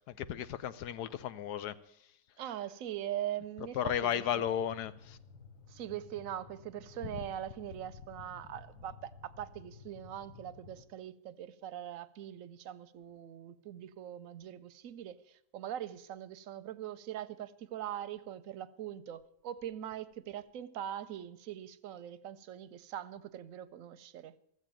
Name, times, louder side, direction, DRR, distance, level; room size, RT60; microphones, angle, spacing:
voice 1, 0.0-1.7 3.7-5.2, left 10 dB, 75° left, 1.2 m, -34 dB
voice 2, 2.4-4.2 5.7-24.3, right 11 dB, 65° right, 0.9 m, -42 dB
sound 1, 4.1-10.8, left 5 dB, 55° left, 1.4 m, -55 dB
14.0 x 8.0 x 8.9 m
omnidirectional pair, 1.7 m